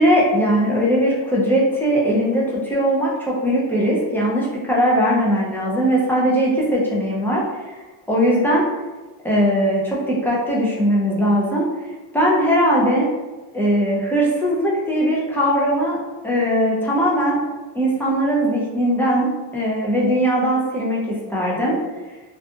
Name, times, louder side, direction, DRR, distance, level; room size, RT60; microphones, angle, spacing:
voice 1, 0.0-7.8 8.1-8.6 9.2-11.7 12.1-13.1 13.5-16.0 16.2-17.4 17.7-21.8, equal, 5° left, -6 dB, 0.4 m, -19 dB
2.7 x 2.4 x 2.3 m, 1.2 s
wide cardioid pair, 170°, 42 cm